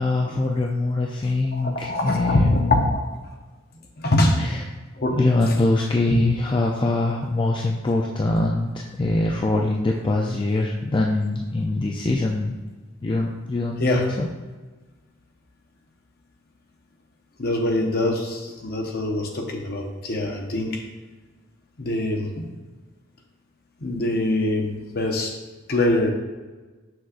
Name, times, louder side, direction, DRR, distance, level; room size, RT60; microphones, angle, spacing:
voice 1, 0.0-2.7 4.4-4.6 5.1-12.6 13.0-14.3, left 2 dB, 25° left, 0 dB, 0.4 m, -23 dB
voice 2, 1.5-2.6 2.9-3.0 4.0-4.4 5.0-5.2 5.5-5.6 6.1-6.2 13.8-14.1 17.4-20.8 21.8-22.5 23.8-25.3 25.7-26.1, left 1 dB, 50° left, 1 dB, 0.9 m, -24 dB
6.3 x 6.2 x 2.5 m, 1.3 s
head